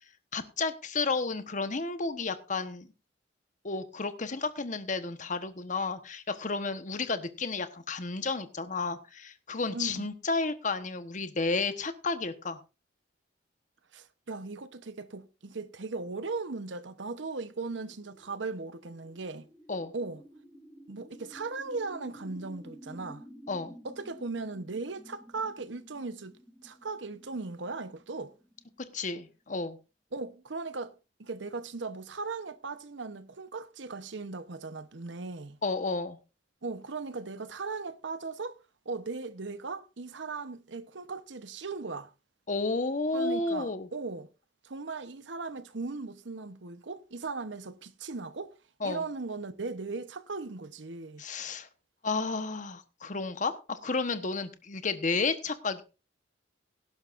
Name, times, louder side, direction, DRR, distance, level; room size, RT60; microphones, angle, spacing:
voice 1, 0.3-2.9 3.6-12.6 19.7-19.9 23.5-23.7 28.9-29.8 35.6-36.2 42.5-43.9 48.8-49.0 51.2-51.7 52.0-55.8, left 3 dB, 45° left, 1.1 m, -32 dB
voice 2, 9.7-10.1 13.9-19.5 19.9-20.2 20.9-23.2 23.8-26.4 26.6-28.3 30.1-30.9 31.2-35.6 36.6-38.6 38.8-42.1 43.1-44.3 44.6-48.5 48.8-51.2, right 3 dB, 75° right, 0.9 m, -38 dB
sound 1, 17.9-29.3, equal, ahead, 1.5 m, -52 dB
17.5 x 11.5 x 2.5 m
head